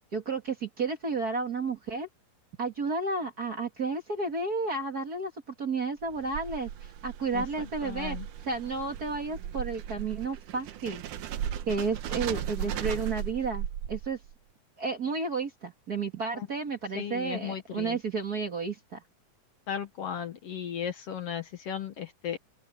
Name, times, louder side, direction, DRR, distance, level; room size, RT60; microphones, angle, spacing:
voice 1, 0.1-2.1 2.6-5.3 5.6-8.2 8.4-11.0 11.7-14.2 14.8-19.0, right 4 dB, 35° right, 2.0 m, -32 dB
sound 1, 6.0-14.3, right 10 dB, 85° right, 2.7 m, -37 dB
voice 2, 7.3-8.3 12.3-12.8 16.3-16.5 17.0-18.0 19.7-22.4, left 8 dB, 60° left, 2.1 m, -36 dB
open air
omnidirectional pair, 3.5 m